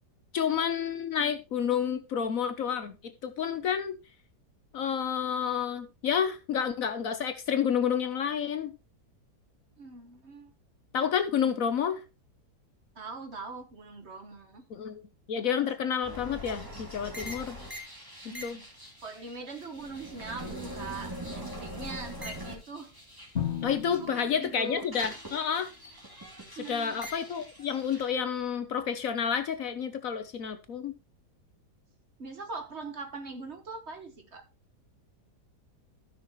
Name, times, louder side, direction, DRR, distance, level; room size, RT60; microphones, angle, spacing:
voice 1, 0.3-3.0 3.2-4.0 4.7-8.7 10.9-12.0 14.7-15.0 15.3-17.6 18.2-18.6 23.6-25.7 26.7-30.9, left 7 dB, 60° left, 1.1 m, -30 dB
voice 2, 9.8-10.5 12.9-14.7 18.3-18.7 19.0-22.9 24.0-24.8 26.6-27.0 32.2-34.4, right 3 dB, 45° right, 1.4 m, -41 dB
sound 1, 16.0-24.0 24.3-28.1, equal, 10° right, 2.7 m, -42 dB
Drum, 23.4-25.4, left 9 dB, 40° left, 2.5 m, -36 dB
15.5 x 6.1 x 3.0 m
omnidirectional pair, 1.8 m